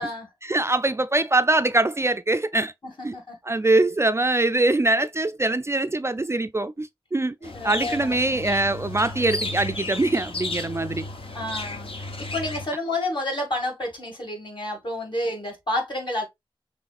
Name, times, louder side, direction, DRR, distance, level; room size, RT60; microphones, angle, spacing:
voice 1, 0.4-2.7 3.0-3.2 3.5-11.0, right 2 dB, 30° right, 0.3 m, -23 dB
voice 2, 2.8-3.4 7.5-8.5 11.3-11.9 12.2-16.3, left 1 dB, 55° left, 2.3 m, -30 dB
sound 1, 7.4-12.7, left 2 dB, 70° left, 0.9 m, -33 dB
5.8 x 3.1 x 2.4 m
wide cardioid pair, 65°, 10 cm